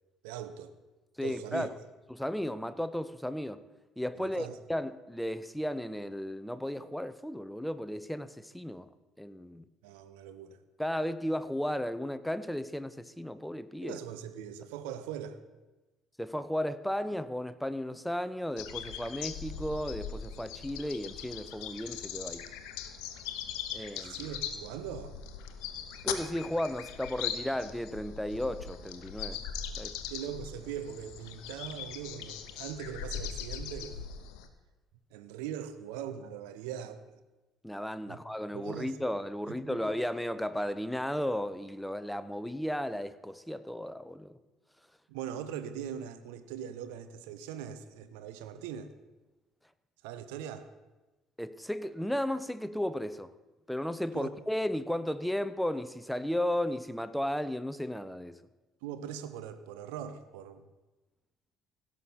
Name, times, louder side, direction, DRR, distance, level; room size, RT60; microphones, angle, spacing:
voice 1, 0.2-0.7 1.2-1.7 4.2-4.6 9.8-10.6 13.8-15.4 23.9-25.2 30.1-34.0 35.1-37.0 38.1-38.2 38.5-39.0 39.5-39.8 45.1-48.9 50.0-50.7 54.1-54.3 58.8-60.6, right 9 dB, 70° right, 0.8 m, -41 dB
voice 2, 1.2-1.7 2.1-3.6 4.0-8.9 9.2-9.6 10.8-14.0 16.2-22.5 23.7-24.3 26.0-29.4 29.8-30.0 37.6-44.4 51.4-53.3 53.7-58.4, left 1 dB, 5° left, 0.6 m, -34 dB
sound 1, 18.6-34.5, left 8 dB, 65° left, 0.8 m, -40 dB
16.5 x 6.4 x 5.6 m
figure-of-eight pair, 55°, 0 cm